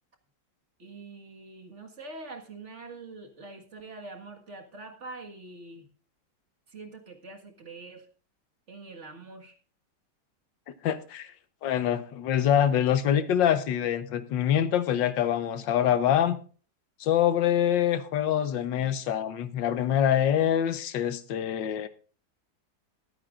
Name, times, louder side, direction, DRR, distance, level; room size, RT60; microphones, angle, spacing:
voice 1, 0.8-5.9 6.7-8.1 8.7-9.6, right 3 dB, 40° right, 1.9 m, -44 dB
voice 2, 10.8-11.3 11.6-16.4 17.0-21.9, left 10 dB, 90° left, 1.7 m, -25 dB
21.0 x 9.1 x 2.5 m
omnidirectional pair, 1.9 m